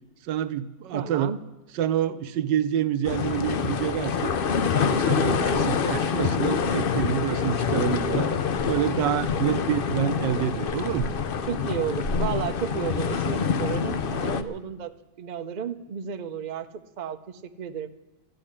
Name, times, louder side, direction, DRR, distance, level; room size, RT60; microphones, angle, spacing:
voice 1, 0.2-1.4 1.7-4.3 4.7-8.3 8.7-11.1, right 10 dB, 90° right, 11 dB, 1.4 m, -27 dB
voice 2, 0.9-1.4 11.5-17.9, right 7 dB, 65° right, 8 dB, 0.4 m, -33 dB
sound 1, 3.0-14.4, left 6 dB, 85° left, 0.4 m, -26 dB
13.5 x 10.5 x 9.9 m, 1.0 s
omnidirectional pair, 1.9 m